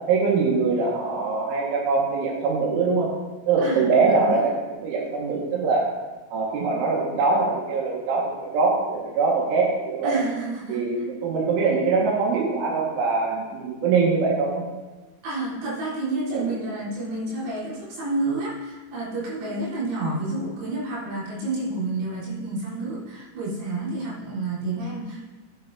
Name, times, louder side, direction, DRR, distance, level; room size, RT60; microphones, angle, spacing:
voice 1, 0.1-3.1 3.5-4.4 4.8-5.8 6.3-10.2 10.7-14.6 16.3-16.4, right 4 dB, 70° right, -3 dB, 4.0 m, -23 dB
voice 2, 3.6-4.5 10.0-10.8 15.2-25.2, right 2 dB, 90° right, -8 dB, 6.6 m, -29 dB
19.0 x 9.2 x 2.7 m, 1.2 s
omnidirectional pair, 5.9 m